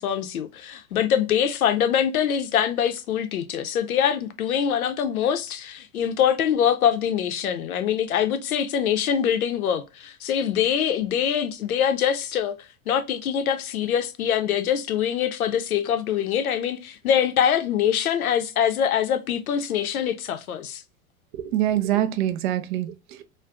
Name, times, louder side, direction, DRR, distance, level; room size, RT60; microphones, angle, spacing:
voice 1, 0.0-12.6 12.9-20.8, left 9 dB, 75° left, 0.6 m, -24 dB
voice 2, 21.3-23.2, right 12 dB, 35° right, 0.4 m, -25 dB
2.5 x 2.2 x 3.4 m
figure-of-eight pair, 90°, 44 cm